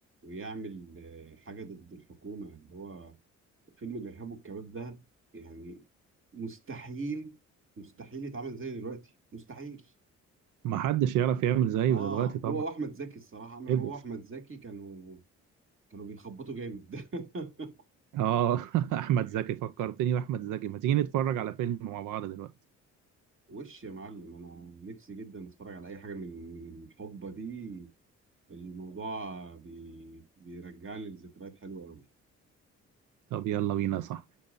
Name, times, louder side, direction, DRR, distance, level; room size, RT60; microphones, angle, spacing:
voice 1, 0.2-3.2 3.8-5.0 5.3-5.8 6.3-7.3 7.8-9.9 11.9-15.2 15.9-17.7 23.5-27.9 28.5-32.0, right 3 dB, 45° right, 2.7 m, -41 dB
voice 2, 10.6-12.6 13.7-13.9 18.1-22.5 33.3-34.2, right 11 dB, 85° right, 0.7 m, -28 dB
10.5 x 7.1 x 2.6 m
cardioid pair, 90°, 30 cm